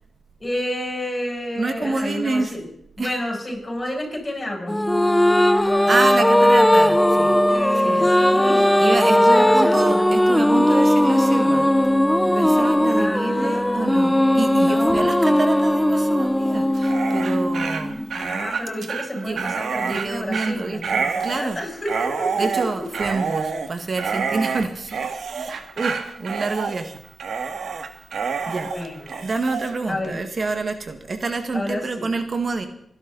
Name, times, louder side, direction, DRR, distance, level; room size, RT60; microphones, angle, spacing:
voice 1, 0.4-2.7 3.0-4.8 7.5-8.9 9.1-10.1 12.9-14.0 14.6-15.1 18.1-22.9 28.6-29.3 29.9-30.2 31.5-32.1, left 1 dB, 30° left, 0 dB, 7.7 m, -30 dB
voice 2, 1.6-2.5 3.0-3.1 5.9-7.4 7.9-8.1 8.6-12.0 12.3-18.0 19.2-21.6 22.4-25.1 25.4-27.0 27.3-27.4 28.5-28.7 29.2-32.7, right 3 dB, 50° right, 7 dB, 1.8 m, -27 dB
sound 1, 4.7-18.3, left 1 dB, 10° left, 0.7 m, -18 dB
Dog, 16.7-29.7, right 5 dB, 80° right, 1.7 m, -28 dB
26.5 x 11.5 x 4.1 m, 0.71 s
cardioid pair, 60°, 0 cm